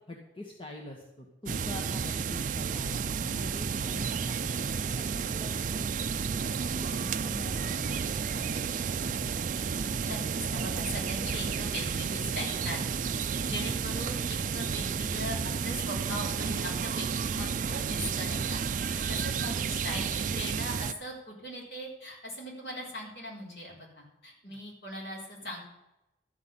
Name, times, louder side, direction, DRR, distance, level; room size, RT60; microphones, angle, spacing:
voice 1, 0.0-6.1 6.4-9.4 24.4-24.6, left 2 dB, 30° left, -1 dB, 1.4 m, -45 dB
sound 1, 1.5-20.9, right 6 dB, 45° right, 0.4 m, -31 dB
voice 2, 10.0-12.8 13.1-25.6, equal, 60° left, -3 dB, 4.1 m, -40 dB
13.0 x 5.8 x 8.1 m, 0.93 s
head